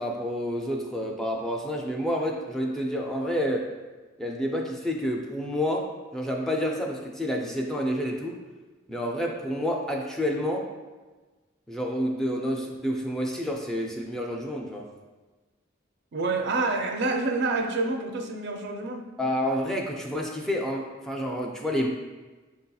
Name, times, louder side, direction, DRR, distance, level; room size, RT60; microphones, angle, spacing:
voice 1, 0.0-3.7 4.2-8.4 8.9-10.7 11.7-14.9 19.2-21.9, equal, 5° left, -1 dB, 0.3 m, -29 dB
voice 2, 16.1-19.1, right 3 dB, 65° right, 4 dB, 0.4 m, -27 dB
6.0 x 2.7 x 2.3 m, 1.3 s
head